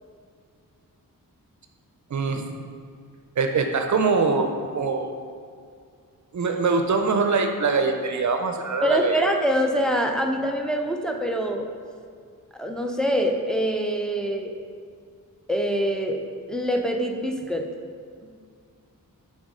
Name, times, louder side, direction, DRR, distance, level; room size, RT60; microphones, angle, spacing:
voice 1, 2.1-2.6 3.4-5.1 6.3-9.2, right 4 dB, 55° right, 5 dB, 0.5 m, -23 dB
voice 2, 8.8-11.7 12.6-14.6 15.5-16.2 16.5-17.7 18.2-18.3, equal, ahead, 2 dB, 0.5 m, -24 dB
6.4 x 3.6 x 4.9 m, 2.2 s
wide cardioid pair, 105°, 35 cm